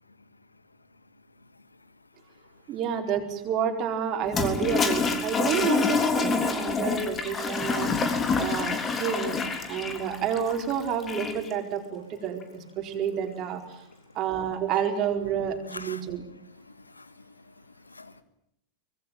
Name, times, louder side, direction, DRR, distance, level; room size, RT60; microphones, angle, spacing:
voice 1, 0.1-1.1 1.3-2.8 9.7-9.9 14.1-14.2 15.7-18.2, left 3 dB, 80° left, 14 dB, 1.6 m, -50 dB
voice 2, 2.7-7.9 8.4-9.4 9.7-13.6 14.1-16.2, right 8 dB, 35° right, 4 dB, 4.4 m, -29 dB
Toilet flush, 4.3-11.5, left 4 dB, 20° left, 3.5 m, -27 dB
24.5 x 20.5 x 9.0 m, 0.79 s
figure-of-eight pair, 90°, 0 cm